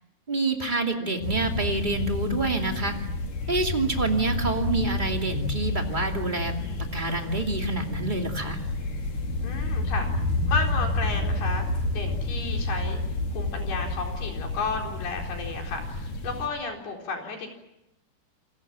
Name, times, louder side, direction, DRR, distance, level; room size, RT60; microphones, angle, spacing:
voice 1, 0.3-2.9 3.5-6.5 6.9-8.6, right 2 dB, 15° right, 3 dB, 1.8 m, -27 dB
sound 1, 1.2-16.5, left 2 dB, 50° left, 4.6 m, -30 dB
voice 2, 9.4-10.1 10.5-11.7 11.9-13.0 13.3-17.5, left 4 dB, 70° left, 2 dB, 6.1 m, -32 dB
29.0 x 22.0 x 7.5 m, 0.88 s
omnidirectional pair, 4.9 m